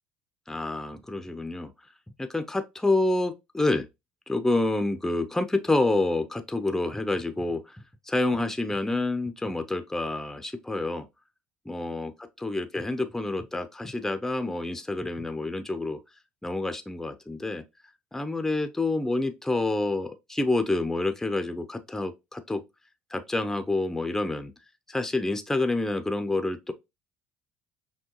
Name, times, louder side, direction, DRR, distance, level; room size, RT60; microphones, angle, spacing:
voice 1, 0.5-1.7 2.2-3.9 4.3-11.1 11.7-16.0 16.4-17.6 18.1-22.6 23.1-24.5 24.9-26.7, left 2 dB, 10° left, 0.6 m, -28 dB
6.0 x 2.3 x 2.9 m
supercardioid pair, 80°, 5 cm